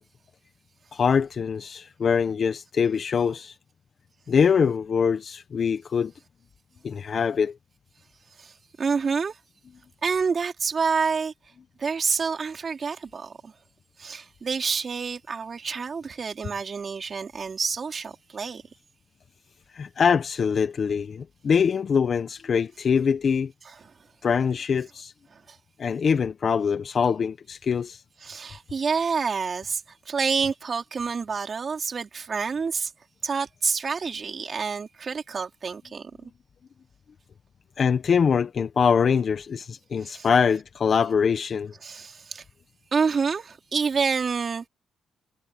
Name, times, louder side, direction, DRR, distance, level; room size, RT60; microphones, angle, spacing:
voice 1, 0.9-3.5 4.3-6.1 6.8-7.6 19.7-23.5 24.2-25.1 25.8-28.0 37.8-41.7, left 6 dB, 45° left, 1.2 m, -23 dB
voice 2, 8.4-9.4 10.0-11.3 11.8-13.5 14.0-18.6 23.7-23.8 25.3-25.6 28.2-32.9 33.2-36.3 40.0-40.3 41.8-42.4 42.9-44.7, right 5 dB, 40° right, 4.7 m, -28 dB
cardioid pair, 90°, 0 cm